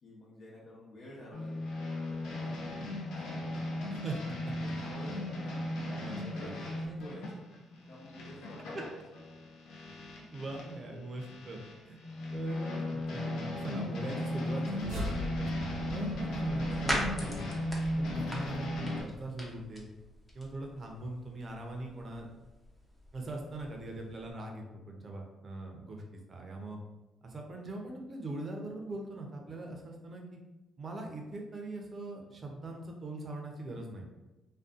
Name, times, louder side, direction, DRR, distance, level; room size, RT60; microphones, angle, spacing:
voice 1, 0.0-4.0 4.4-7.4 7.9-9.0, left 1 dB, 65° left, -6 dB, 0.9 m, -50 dB
sound 1, 1.3-10.8 11.2-19.0, left 1 dB, 85° left, 0.6 m, -37 dB
voice 2, 6.0-6.5 10.3-12.0 12.3-17.4 18.0-19.9 20.3-22.3 23.1-26.0 26.3-26.8 27.2-30.4 30.8-34.1, right 2 dB, 40° right, 1 dB, 0.6 m, -41 dB
sound 2, 14.4-19.6, left 1 dB, 80° right, 0.7 m, -42 dB
sound 3, 15.6-24.3, equal, 10° left, 0.6 m, -42 dB
2.5 x 2.2 x 2.4 m, 1.0 s
cardioid pair, 90°, 0 cm